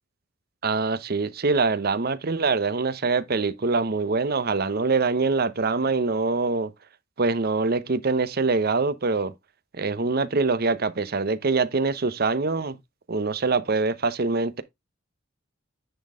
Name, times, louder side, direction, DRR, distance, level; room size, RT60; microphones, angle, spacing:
voice 1, 0.6-6.7 7.2-9.3 9.8-12.8 13.1-14.6, right 4 dB, 50° right, 0.7 m, -24 dB
9.7 x 4.2 x 3.5 m
head